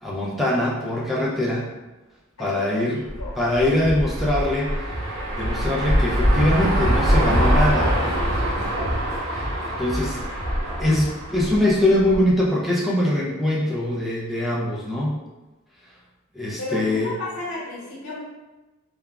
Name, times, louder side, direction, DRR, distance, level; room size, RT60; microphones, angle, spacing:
voice 1, 0.0-1.7 2.4-3.0 3.4-4.7 5.4-7.9 9.3-9.5 9.8-10.2 10.8-15.1 16.3-17.1, left 1 dB, ahead, -6 dB, 0.4 m, -22 dB
voice 2, 2.4-3.4 9.2-9.4 16.6-18.2, left 2 dB, 85° left, -6 dB, 1.0 m, -34 dB
sound 1, 3.1-12.3, equal, 75° right, 0.7 m, -23 dB
3.4 x 2.0 x 2.2 m, 1.1 s
head